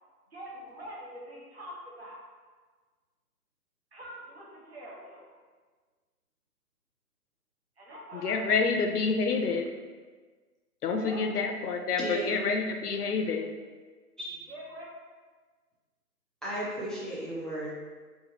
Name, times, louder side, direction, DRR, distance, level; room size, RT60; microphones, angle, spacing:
voice 1, 0.3-2.3 3.9-5.3 7.8-8.6 10.9-11.3 14.5-14.9, equal, 40° right, -5 dB, 0.8 m, -44 dB
voice 2, 8.1-9.7 10.8-13.5, left 4 dB, 70° left, 4 dB, 0.6 m, -28 dB
voice 3, 12.0-12.3 14.2-14.4 16.4-17.7, right 1 dB, ahead, -8 dB, 0.3 m, -35 dB
2.9 x 2.8 x 2.9 m, 1.4 s
hypercardioid pair, 170°, 48 cm